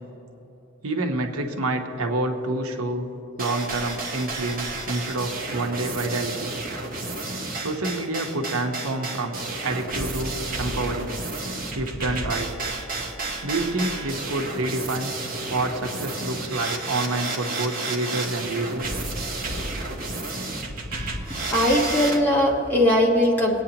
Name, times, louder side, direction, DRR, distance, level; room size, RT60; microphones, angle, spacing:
voice 1, 0.8-3.1 3.4-6.5 7.6-9.4 9.6-11.2 11.7-12.6 13.4-15.1 15.5-19.0, right 2 dB, 85° right, 4 dB, 1.0 m, -28 dB
sound 1, 3.4-22.2, right 2 dB, 40° right, 1.1 m, -31 dB
voice 2, 21.5-23.6, left 1 dB, 10° left, -3 dB, 1.3 m, -20 dB
22.0 x 8.8 x 2.9 m, 3.0 s
head